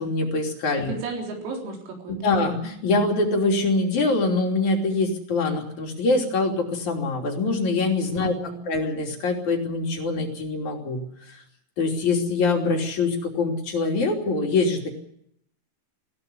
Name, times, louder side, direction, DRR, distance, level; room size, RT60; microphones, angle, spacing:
voice 1, 0.0-0.9 2.2-8.3 8.7-11.0 11.8-14.9, left 3 dB, 40° left, 1 dB, 3.8 m, -24 dB
voice 2, 0.9-2.3 8.1-8.6, right 3 dB, 90° right, 0 dB, 6.7 m, -34 dB
20.5 x 15.5 x 9.9 m, 0.74 s
omnidirectional pair, 5.9 m